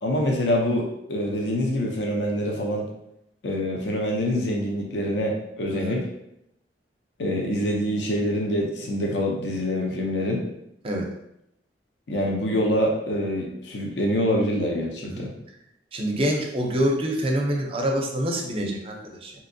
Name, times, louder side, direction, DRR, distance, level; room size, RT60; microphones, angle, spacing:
voice 1, 0.0-2.9 3.4-6.0 7.2-10.4 12.1-15.3, equal, 75° left, 0 dB, 0.6 m, -25 dB
voice 2, 15.9-19.3, equal, 30° right, 1 dB, 0.5 m, -26 dB
3.4 x 2.8 x 2.6 m, 0.80 s
head